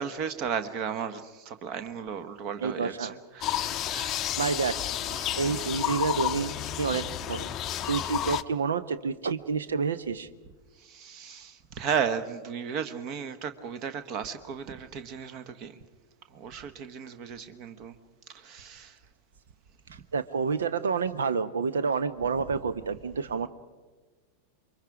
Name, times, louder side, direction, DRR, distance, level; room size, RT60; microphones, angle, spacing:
voice 1, 0.0-4.3 5.0-5.7 10.8-15.7 16.3-17.9 18.3-18.9, right 7 dB, 40° right, 11 dB, 1.4 m, -35 dB
voice 2, 2.6-3.1 4.4-4.8 5.4-7.5 7.9-10.3 20.1-23.5, right 5 dB, 70° right, 15 dB, 0.9 m, -29 dB
sound 1, 3.4-8.4, left 12 dB, 30° left, 0.6 m, -31 dB
28.5 x 24.0 x 5.0 m, 1.4 s
figure-of-eight pair, 90°, 0 cm